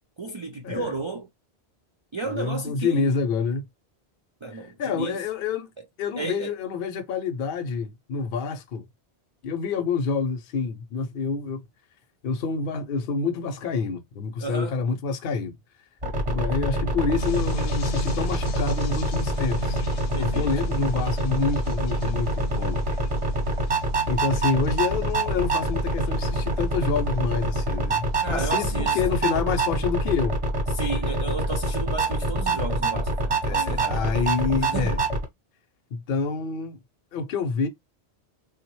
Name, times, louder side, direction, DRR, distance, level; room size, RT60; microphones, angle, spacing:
voice 1, 0.2-1.3 2.1-3.1 4.4-5.2 6.2-6.5 14.4-14.8 20.1-20.5 28.2-29.0 30.7-34.0 34.6-35.0, right 3 dB, 50° right, 0.3 m, -33 dB
voice 2, 2.3-3.7 4.5-5.7 6.0-8.9 9.4-11.6 12.2-15.6 16.3-19.8 20.2-22.8 24.1-30.4 33.4-35.0 35.9-36.8 37.1-37.7, left 5 dB, 60° left, 0.7 m, -27 dB
sound 1, 16.0-35.2, right 1 dB, 30° right, 0.8 m, -26 dB
sound 2, 17.2-29.3, left 2 dB, 90° left, 0.9 m, -38 dB
3.5 x 2.1 x 3.0 m
omnidirectional pair, 1.1 m